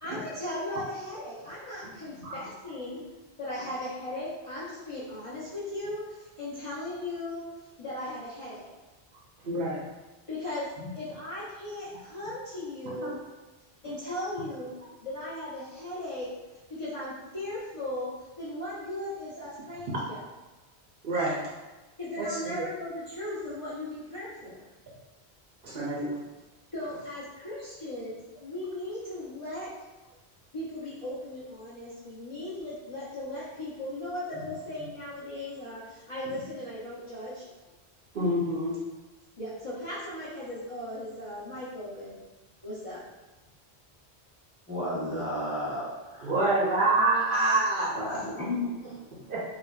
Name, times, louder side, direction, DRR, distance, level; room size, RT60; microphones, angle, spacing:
voice 1, 0.0-3.0 3.4-7.4 7.8-8.7 10.3-10.7 10.9-13.2 13.8-14.7 15.0-16.3 16.7-20.2 22.0-24.6 26.7-29.7 30.5-37.5 39.4-42.2 42.6-43.0 46.3-46.6, left 1 dB, 35° left, -11 dB, 0.6 m, -37 dB
voice 2, 9.4-9.8 13.0-13.1 19.9-20.0 21.0-21.4 22.2-22.5 25.6-26.1 38.1-38.8 46.2-48.2 49.3-49.4, right 2 dB, 60° right, -6 dB, 0.7 m, -27 dB
voice 3, 44.7-46.3 47.9-49.3, left 1 dB, 10° right, -8 dB, 0.7 m, -33 dB
3.2 x 2.1 x 2.2 m, 1.1 s
omnidirectional pair, 1.1 m